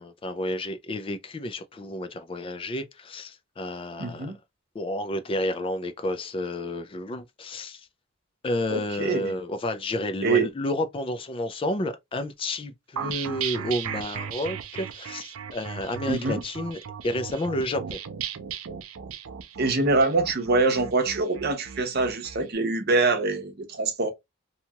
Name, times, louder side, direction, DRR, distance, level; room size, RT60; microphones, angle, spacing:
voice 1, 0.0-4.3 4.7-7.9 8.4-18.0, left 1 dB, 25° left, 0.3 m, -31 dB
voice 2, 4.0-4.4 8.7-9.3 10.2-10.5 16.1-16.4 19.6-24.1, right 3 dB, 50° right, 0.7 m, -24 dB
sound 1, 13.0-22.4, right 8 dB, 80° right, 0.5 m, -36 dB
2.8 x 2.3 x 2.8 m
head